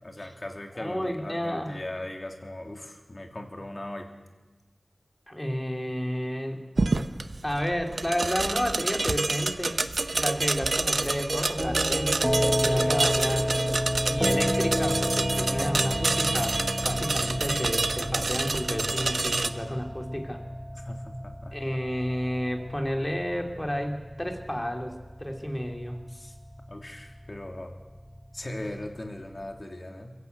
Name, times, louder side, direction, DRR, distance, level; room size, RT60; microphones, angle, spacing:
voice 1, 0.0-4.1 12.7-12.9 20.7-21.6 26.1-27.7 28.3-30.1, left 1 dB, 45° left, 3 dB, 2.9 m, -39 dB
voice 2, 0.8-1.8 5.3-6.6 7.4-9.8 10.1-12.2 12.6-13.5 14.0-16.6 16.8-20.4 21.5-26.0, equal, 20° left, 3 dB, 3.2 m, -31 dB
sound 1, 6.8-19.5, right 3 dB, 80° right, 0.9 m, -28 dB
sound 2, 11.6-29.6, equal, ahead, 0.9 m, -31 dB
22.5 x 15.0 x 8.2 m, 1.2 s
wide cardioid pair, 40°, 0 cm